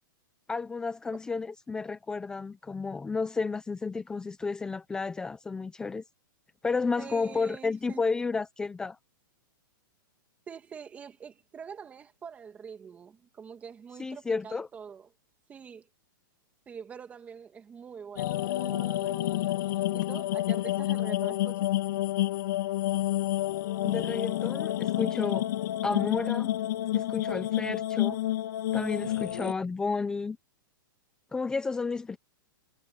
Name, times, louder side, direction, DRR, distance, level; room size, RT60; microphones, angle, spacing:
voice 1, 0.5-6.0 6.6-9.0 14.0-14.7 23.8-25.5 25.8-26.5 26.9-28.2 28.7-30.4 31.3-32.2, left 4 dB, 5° left, 0.9 m, -32 dB
voice 2, 7.0-8.0 10.5-15.1 15.5-15.9 16.7-19.6 19.9-21.7, right 7 dB, 10° right, 2.4 m, -45 dB
sound 1, 18.2-29.5, left 14 dB, 60° left, 2.4 m, -29 dB
supercardioid pair, 165°, 12 cm